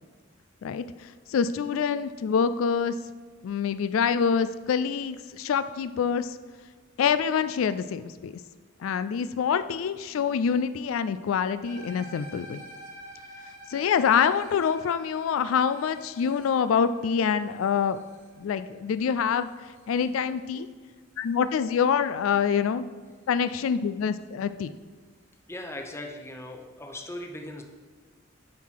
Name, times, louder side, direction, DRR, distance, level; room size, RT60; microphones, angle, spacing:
voice 1, 0.6-2.9 3.4-6.4 7.0-8.3 8.8-12.6 13.7-18.0 18.4-19.5 19.9-20.7 21.2-22.8 23.3-24.7, left 7 dB, 80° left, 13 dB, 0.3 m, -26 dB
sound 1, 11.6-20.1, right 1 dB, 45° right, 1.6 m, -48 dB
voice 2, 25.5-27.6, left 1 dB, 15° left, 3 dB, 0.8 m, -39 dB
9.5 x 5.8 x 4.6 m, 1.5 s
head